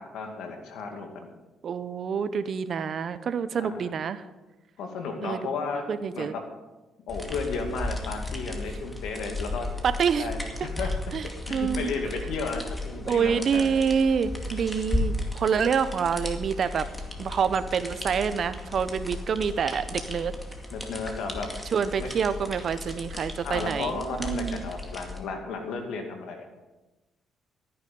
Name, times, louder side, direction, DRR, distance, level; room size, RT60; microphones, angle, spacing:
voice 1, 0.0-1.3 3.6-3.9 4.8-5.8 6.1-6.4 7.1-9.7 10.2-10.9 11.2-13.7 20.7-21.5 22.0-22.1 23.4-26.6, left 4 dB, 85° left, 4 dB, 2.3 m, -34 dB
voice 2, 1.6-4.2 5.2-5.5 5.9-6.3 9.8-10.3 11.1-11.9 13.0-16.9 17.2-20.3 21.7-24.7, right 6 dB, 55° right, 13 dB, 0.8 m, -27 dB
sound 1, 7.1-25.2, left 2 dB, 15° left, 2.2 m, -35 dB
14.0 x 9.7 x 5.4 m, 1.1 s
cardioid pair, 90°, 0 cm